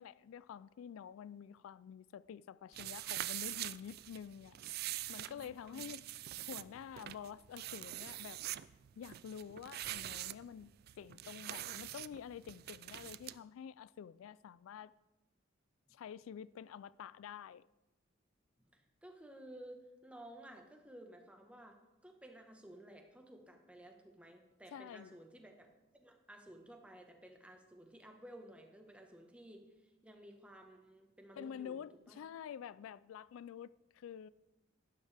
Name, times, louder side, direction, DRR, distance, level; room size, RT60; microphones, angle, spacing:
voice 1, 0.0-4.6 5.1-6.0 6.5-8.4 9.0-14.9 15.9-17.7 24.7-25.1 31.4-34.3, left 8 dB, 90° left, 0.3 m, -48 dB
sound 1, 2.7-13.4, right 14 dB, 50° right, 0.3 m, -44 dB
voice 2, 18.6-21.8 22.0-32.2, right 1 dB, 5° right, 1.2 m, -55 dB
12.0 x 11.5 x 3.4 m
head